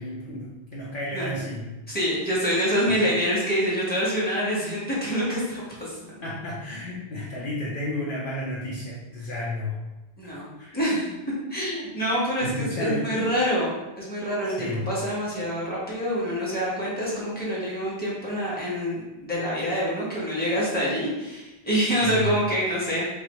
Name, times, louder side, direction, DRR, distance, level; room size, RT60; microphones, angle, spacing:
voice 1, 0.0-1.7 6.2-9.8 10.2-10.3 10.6-10.8 12.4-13.2 14.6-14.9 22.0-22.3, left 1 dB, 60° left, -6 dB, 0.9 m, -32 dB
voice 2, 1.9-6.2 10.2-11.1 11.5-13.7 14.0-23.0, equal, 10° left, -8 dB, 1.4 m, -26 dB
4.0 x 3.4 x 3.1 m, 1.0 s
omnidirectional pair, 1.0 m